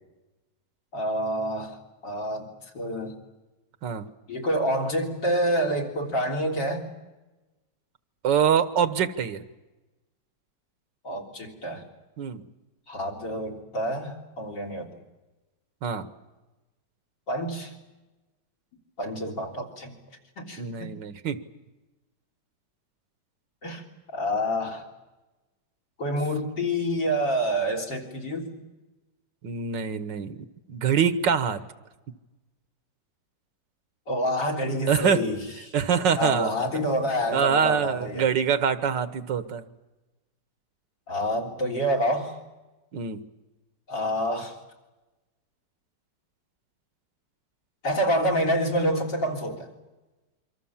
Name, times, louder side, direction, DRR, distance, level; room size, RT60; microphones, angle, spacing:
voice 1, 0.9-1.8 2.0-2.5 2.7-3.2 4.3-6.9 11.0-11.8 12.9-14.9 17.3-17.7 19.0-19.9 20.4-20.9 23.6-23.8 24.1-24.9 26.0-28.5 34.1-35.4 36.2-38.3 41.1-42.4 43.9-44.5 47.8-49.7, equal, 75° left, 6 dB, 4.3 m, -27 dB
voice 2, 8.2-9.4 12.2-12.4 15.8-16.1 20.6-21.4 29.4-30.4 30.7-31.6 34.9-35.3 35.7-36.7 37.3-39.6 41.4-41.5 42.9-43.2, right 7 dB, 80° right, 12 dB, 1.9 m, -25 dB
26.5 x 24.5 x 7.3 m, 1.1 s
omnidirectional pair, 1.9 m